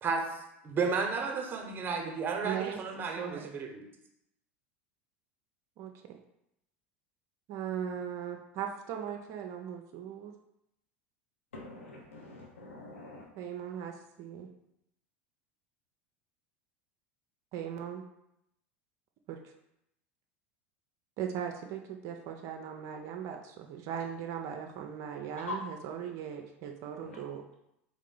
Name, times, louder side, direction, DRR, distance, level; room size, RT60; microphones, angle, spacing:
voice 1, 0.0-3.8, right 5 dB, 30° right, 2 dB, 0.9 m, -33 dB
voice 2, 2.4-3.5 5.8-6.2 7.5-10.3 13.4-14.5 17.5-18.0 19.3-19.4 21.2-27.5, right 8 dB, 50° right, 3 dB, 0.5 m, -39 dB
voice 3, 11.5-13.3 25.4-25.6 27.0-27.2, left 3 dB, 90° left, 0 dB, 0.7 m, -43 dB
3.6 x 3.4 x 3.8 m, 0.81 s
hypercardioid pair, 85°, 7 cm